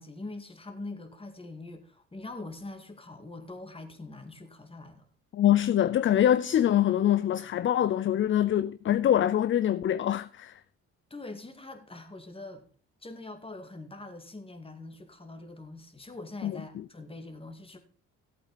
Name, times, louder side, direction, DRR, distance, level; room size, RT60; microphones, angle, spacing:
voice 1, 0.0-5.1 11.1-12.6 13.0-17.8, left 2 dB, 20° left, 2.2 m, -43 dB
voice 2, 5.3-10.6 16.4-16.8, left 11 dB, 40° left, 0.5 m, -24 dB
14.5 x 8.4 x 4.1 m
cardioid pair, 90°, 30 cm